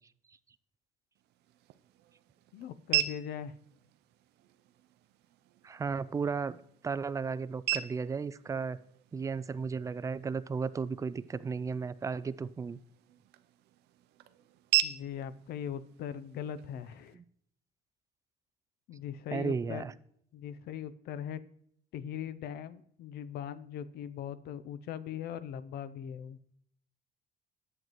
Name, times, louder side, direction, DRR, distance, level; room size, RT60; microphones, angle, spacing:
sound 1, 1.2-17.2, right 14 dB, 75° right, 0.5 m, -39 dB
voice 1, 2.5-3.5 14.8-17.2 18.9-19.9 20.3-21.4 21.9-26.4, left 9 dB, 70° left, 14 dB, 0.5 m, -40 dB
voice 2, 5.6-6.6 6.8-8.8 9.1-12.8 17.1-17.2 19.3-19.9, right 5 dB, 20° right, 16 dB, 0.3 m, -34 dB
10.5 x 7.8 x 3.0 m, 0.67 s
cardioid pair, 110°, 17 cm